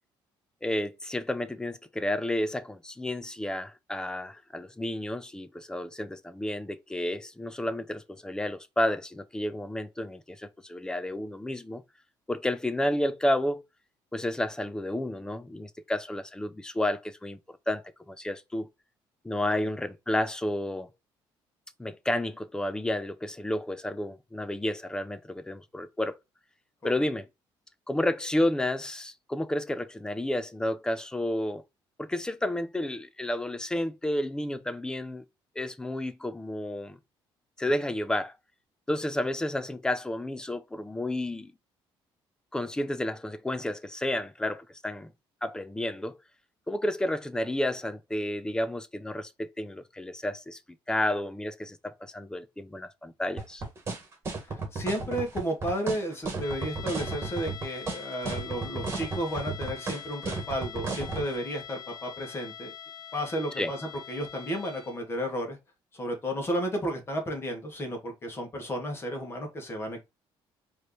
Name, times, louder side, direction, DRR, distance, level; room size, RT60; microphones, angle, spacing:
voice 1, 0.6-11.8 12.3-13.6 14.1-18.7 19.2-20.9 21.8-26.2 26.8-27.3 27.9-31.6 32.0-35.2 35.6-37.0 37.6-38.3 38.9-41.5 42.5-45.1 45.4-46.2 46.7-50.6 50.9-53.6 63.6-63.7, left 1 dB, 10° left, 0.5 m, -31 dB
sound 1, 53.4-61.3, right 4 dB, 30° right, 1.8 m, -33 dB
voice 2, 54.5-62.7 63.1-65.6 65.9-70.0, equal, 25° left, 1.7 m, -33 dB
sound 2, 56.4-65.1, left 8 dB, 45° left, 0.9 m, -44 dB
4.8 x 3.1 x 3.2 m
cardioid pair, 130°, 9 cm